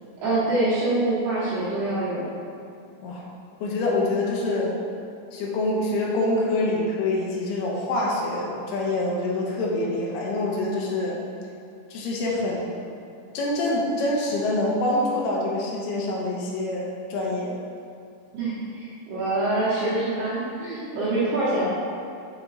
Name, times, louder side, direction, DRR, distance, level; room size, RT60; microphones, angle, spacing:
voice 1, 0.2-2.3 18.3-21.7, right 2 dB, 70° right, -11 dB, 2.8 m, -25 dB
voice 2, 3.6-4.8 5.3-11.2 11.9-12.8 13.3-17.6, left 2 dB, 80° left, -3 dB, 2.5 m, -26 dB
6.9 x 3.5 x 4.1 m, 2.4 s
omnidirectional pair, 5.2 m